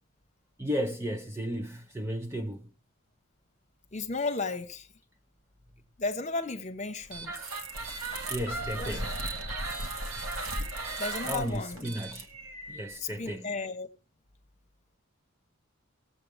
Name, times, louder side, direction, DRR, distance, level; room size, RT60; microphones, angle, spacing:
voice 1, 0.6-2.7 8.3-9.1 11.2-12.3 12.7-13.5, equal, 10° right, 0.5 m, -34 dB
voice 2, 3.9-4.9 6.0-7.4 8.7-9.0 11.0-11.9 13.0-13.9, left 3 dB, 30° left, 1.0 m, -34 dB
sound 1, 7.1-13.0, right 2 dB, 75° right, 1.7 m, -36 dB
19.0 x 7.8 x 3.4 m
head